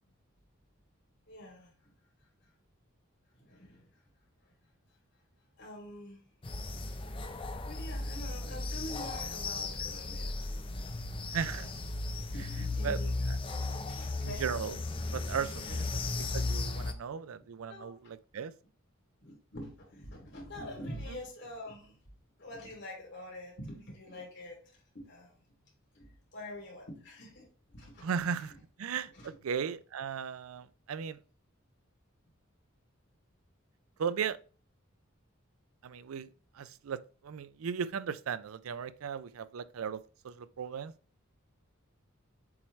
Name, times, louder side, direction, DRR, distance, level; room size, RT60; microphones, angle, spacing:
voice 1, 1.3-1.9 2.4-2.5 3.3-3.9 4.4-4.5 5.6-6.3 7.7-10.3 10.7-10.8 11.4-11.9 12.3-13.3 13.6-14.4 15.7-15.8 17.7-17.9 19.2-22.0 22.4-25.4 25.9-27.5 27.7-28.1 29.1-29.3, left 1 dB, 55° left, 3.0 m, -46 dB
sound 1, 6.4-16.9, left 2 dB, 25° left, 0.6 m, -36 dB
voice 2, 11.3-11.7 12.8-13.0 13.3-13.4 14.2-14.8 15.1-15.9 16.2-18.5 28.0-28.5 28.8-31.2 34.0-34.4 35.8-36.3 36.5-40.9, right 7 dB, 85° right, 0.4 m, -36 dB
7.3 x 4.5 x 3.1 m
head